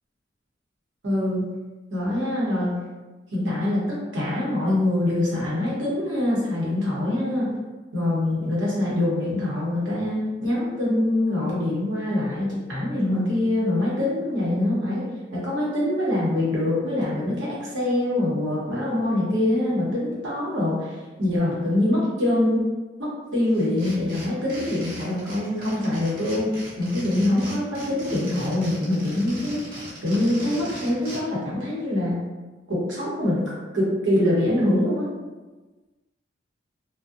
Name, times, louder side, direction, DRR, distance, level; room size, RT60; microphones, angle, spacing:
voice 1, 1.0-1.5 1.9-2.8 3.3-7.5 7.9-22.6 23.0-32.2 32.7-33.4 33.7-35.1, left 1 dB, 80° right, -6 dB, 0.9 m, -24 dB
sound 1, 23.5-31.2, right 1 dB, 50° right, 0.9 m, -39 dB
2.6 x 2.1 x 2.4 m, 1.2 s
head